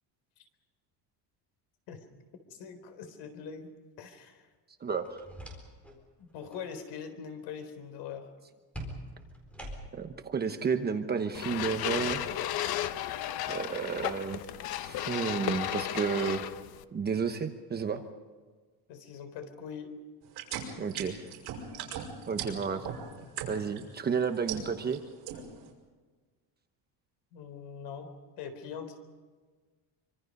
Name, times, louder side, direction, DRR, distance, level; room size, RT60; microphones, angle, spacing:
voice 1, 2.6-3.7 4.0-4.5 6.2-8.3 18.9-19.9 27.3-28.1 28.4-29.0, left 7 dB, 75° left, 7 dB, 4.0 m, -42 dB
voice 2, 4.8-5.2 10.0-12.4 13.5-14.4 14.8-16.4 16.9-18.0 20.8-21.2 22.3-22.9 23.5-25.0, right 6 dB, 25° right, 6 dB, 1.0 m, -31 dB
sound 1, 5.0-6.0 6.3-6.7 8.7-10.1, right 1 dB, 5° left, 4.2 m, -43 dB
sound 2, 11.3-16.8, left 12 dB, 60° left, 1.0 m, -34 dB
sound 3, 20.3-23.8 24.2-25.0 25.3-25.7, right 8 dB, 60° right, 5.7 m, -38 dB
26.0 x 25.0 x 5.4 m, 1.4 s
cardioid pair, 170°, 42 cm